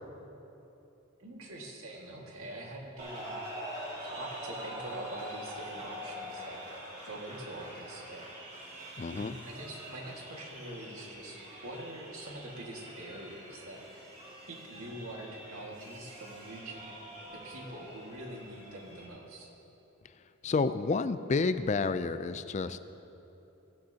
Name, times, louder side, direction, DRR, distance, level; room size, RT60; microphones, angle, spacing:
voice 1, 1.2-3.4 4.1-6.6 7.0-8.6 9.1-14.2 14.5-17.0 17.3-19.5, right 1 dB, 80° right, -1 dB, 1.9 m, -44 dB
sound 1, 3.0-19.1, equal, 35° right, 2.8 m, -45 dB
voice 2, 9.0-9.3 20.4-22.8, left 4 dB, 35° left, 12 dB, 0.4 m, -30 dB
16.5 x 14.0 x 2.9 m, 3.0 s
head